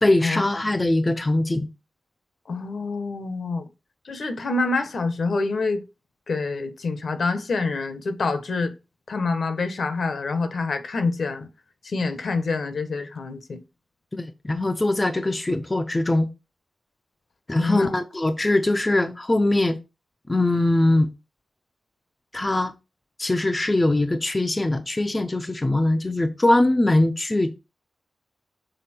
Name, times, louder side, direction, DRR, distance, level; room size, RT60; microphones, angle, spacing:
voice 1, 0.0-1.7 14.1-16.3 17.5-19.8 20.3-21.1 22.3-22.7 23.2-27.6, left 2 dB, 20° left, 0.5 m, -22 dB
voice 2, 2.5-3.7 4.0-5.8 6.3-8.7 9.1-11.5 11.8-13.6 17.6-17.9, left 3 dB, 70° left, 1.0 m, -26 dB
6.7 x 4.1 x 4.3 m
wide cardioid pair, 125°, 0 cm